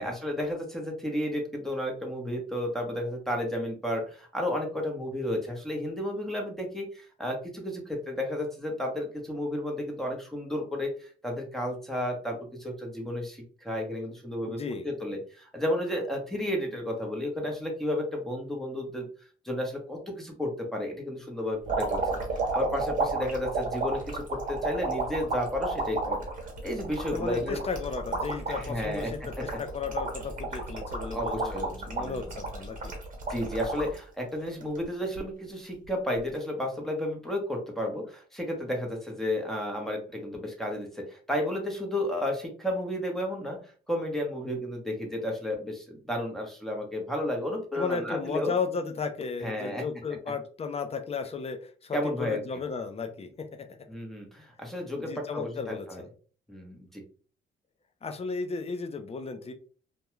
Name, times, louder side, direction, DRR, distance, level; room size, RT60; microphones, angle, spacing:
voice 1, 0.0-22.2 22.5-26.3 26.6-27.6 28.5-29.4 31.1-32.3 33.3-48.5 49.4-49.8 51.9-52.4 53.9-56.0 56.5-57.0, left 1 dB, ahead, 1 dB, 0.9 m, -32 dB
voice 2, 14.5-14.9 27.1-32.9 47.7-53.7 55.0-56.1 58.0-59.5, left 5 dB, 30° left, 6 dB, 0.5 m, -34 dB
sound 1, 21.7-34.0 34.5-35.2 36.2-36.4, right 3 dB, 40° right, 1.1 m, -32 dB
2.3 x 2.2 x 3.0 m, 0.40 s
cardioid pair, 90°, 20 cm